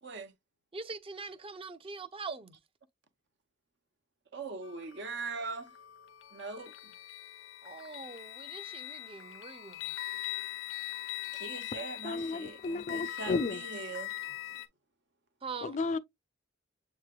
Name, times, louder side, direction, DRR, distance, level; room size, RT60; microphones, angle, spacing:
voice 1, 0.0-0.3 4.3-5.7 6.3-6.9 11.3-14.1, right 4 dB, 65° right, 0.7 m, -41 dB
voice 2, 0.7-2.6 7.6-9.9 15.4-15.8, right 4 dB, 30° right, 0.6 m, -43 dB
sound 1, 4.6-14.7, left 14 dB, 85° left, 0.6 m, -42 dB
voice 3, 12.0-13.6 15.6-16.0, left 3 dB, 40° left, 0.3 m, -33 dB
7.4 x 3.0 x 2.3 m
head